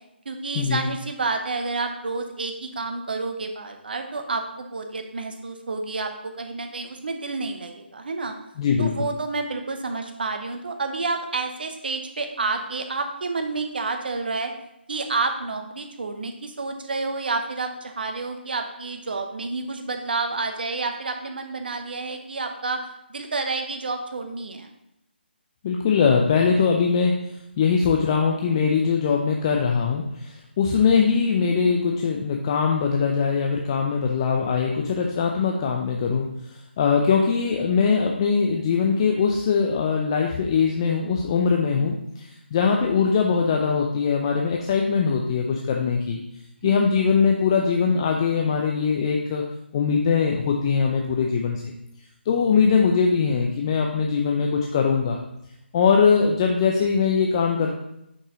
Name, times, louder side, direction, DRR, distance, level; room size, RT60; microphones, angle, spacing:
voice 1, 0.2-8.3 8.8-14.5 14.9-24.7 30.8-31.2 41.7-42.0 46.6-46.9 56.1-56.2, right 3 dB, 55° right, 5 dB, 0.9 m, -29 dB
voice 2, 8.6-8.9 25.6-36.3 36.8-46.2 46.6-49.4 49.7-51.7 52.3-55.2 55.7-57.8, left 5 dB, 25° left, 1 dB, 0.5 m, -21 dB
5.7 x 5.4 x 3.7 m, 0.84 s
figure-of-eight pair, 150°, 6 cm